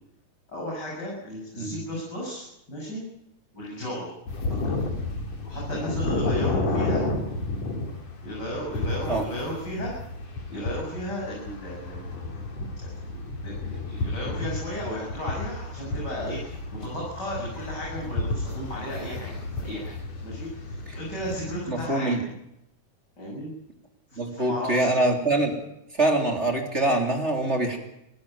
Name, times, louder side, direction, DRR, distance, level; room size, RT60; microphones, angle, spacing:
voice 1, 0.5-3.0 3.5-4.1 4.5-4.6 5.4-7.0 8.2-9.9 10.5-12.4 12.8-20.0 20.2-22.1 23.2-23.5 24.1-25.0, equal, 30° left, -4 dB, 8.2 m, -34 dB
sound 1, 4.3-21.7, left 2 dB, 55° left, 5.0 m, -32 dB
voice 2, 21.7-22.2 24.2-25.6 25.9-27.8, right 2 dB, 20° right, 3 dB, 3.6 m, -24 dB
26.5 x 15.5 x 9.0 m, 0.84 s
omnidirectional pair, 3.7 m